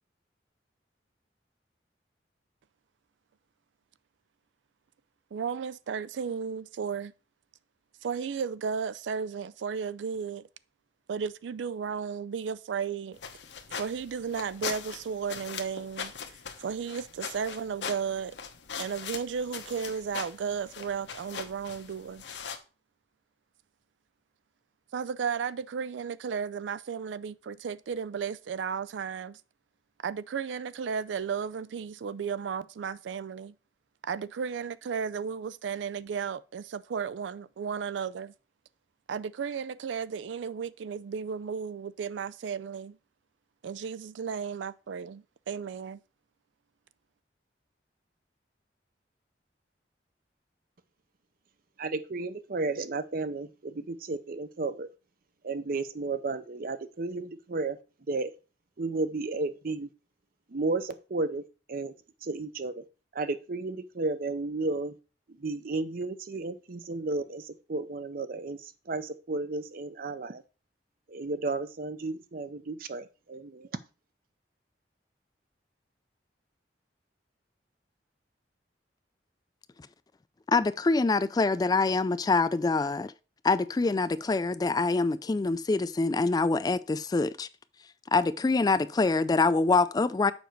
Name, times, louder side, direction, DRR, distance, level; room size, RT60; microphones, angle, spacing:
voice 1, 5.3-7.1 8.0-10.5 11.1-13.2 13.7-16.1 16.6-18.4 18.8-22.2 24.9-29.4 30.0-33.5 34.0-38.3 39.1-43.0 43.6-46.0, right 6 dB, 90° right, 0.4 m, -34 dB
sound 1, 13.1-22.6, left 6 dB, 80° left, 1.0 m, -41 dB
voice 2, 51.8-54.9 55.4-57.8 58.1-58.3 58.8-59.9 60.5-61.4 61.7-61.9 62.2-62.8 63.1-64.9 65.4-70.4 71.1-73.7, right 3 dB, 55° right, 0.6 m, -33 dB
voice 3, 80.5-83.1 83.4-87.5 88.1-90.3, left 3 dB, 20° left, 0.3 m, -25 dB
7.1 x 5.2 x 4.5 m
head